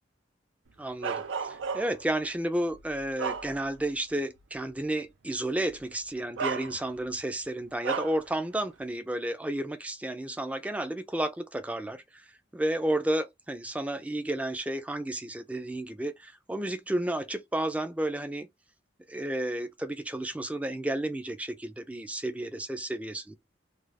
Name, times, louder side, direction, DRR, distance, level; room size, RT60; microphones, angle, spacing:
voice 1, 0.8-12.2 12.5-18.5 19.1-23.4, right 1 dB, 5° right, 0.3 m, -32 dB
Bark, 1.0-2.1 2.7-3.9 4.4-4.5 5.7-5.8 6.4-7.1 7.8-8.3, right 6 dB, 85° right, 0.5 m, -34 dB
2.4 x 2.3 x 3.2 m
head